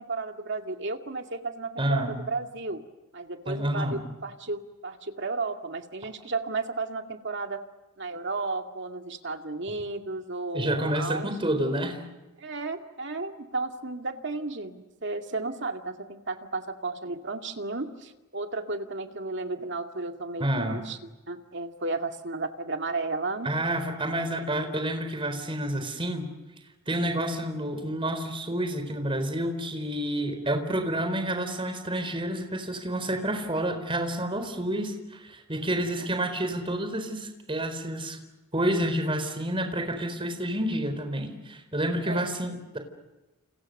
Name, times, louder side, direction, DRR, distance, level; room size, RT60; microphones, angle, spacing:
voice 1, 0.0-2.8 3.1-7.6 8.0-11.3 12.4-21.0 21.3-23.5 35.7-36.1 42.1-42.3, right 3 dB, 55° right, 5 dB, 2.2 m, -33 dB
voice 2, 1.8-2.2 3.5-4.1 10.5-12.0 20.4-20.9 23.4-26.3 26.9-38.2 38.5-42.8, right 1 dB, 25° right, 6 dB, 4.2 m, -29 dB
30.0 x 29.0 x 6.6 m, 1.1 s
head